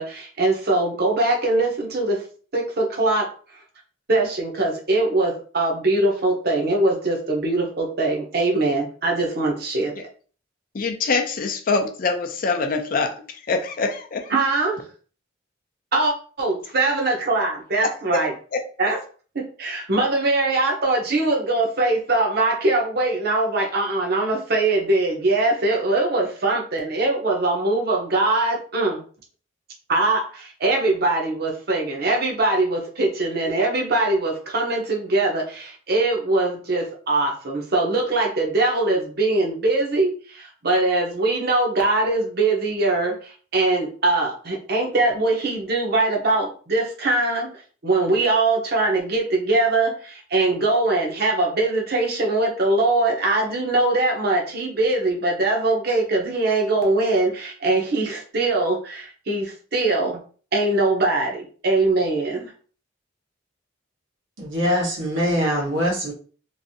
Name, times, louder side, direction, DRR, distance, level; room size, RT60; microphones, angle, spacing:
voice 1, 0.0-2.2 2.5-3.3 4.1-9.9 14.3-14.8 15.9-18.3 18.8-19.0 19.6-29.0 29.9-47.5 47.8-60.2 60.5-62.5, right 2 dB, 55° right, 0 dB, 0.9 m, -22 dB
voice 2, 10.7-13.1 13.5-14.3 18.5-18.6, left 4 dB, 45° left, 5 dB, 0.5 m, -24 dB
voice 3, 64.4-66.1, equal, 85° right, -3 dB, 1.3 m, -23 dB
3.1 x 2.6 x 2.7 m, 0.41 s
head